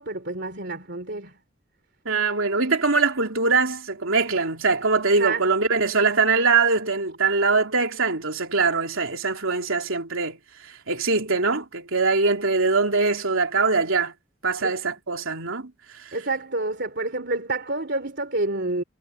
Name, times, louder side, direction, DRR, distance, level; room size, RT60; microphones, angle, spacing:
voice 1, 0.0-1.3 5.1-5.4 14.6-14.8 16.1-18.8, right 2 dB, 55° right, 3.5 m, -28 dB
voice 2, 2.0-10.4 10.9-14.1 14.4-15.7, right 4 dB, 75° right, 3.2 m, -22 dB
head